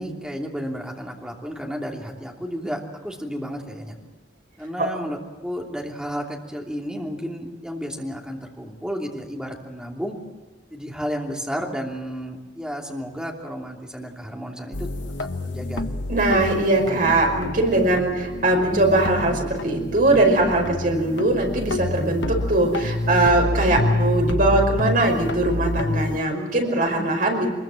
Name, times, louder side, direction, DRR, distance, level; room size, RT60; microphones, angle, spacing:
voice 1, 0.0-4.0 4.6-10.2 10.7-14.9 15.2-15.8 26.6-26.7, equal, 5° right, 0 dB, 2.9 m, -32 dB
sound 1, 14.7-26.2, left 2 dB, 85° left, 1.1 m, -28 dB
voice 2, 16.1-27.5, right 2 dB, 50° right, 2 dB, 5.4 m, -21 dB
23.5 x 22.0 x 7.7 m, 1.3 s
head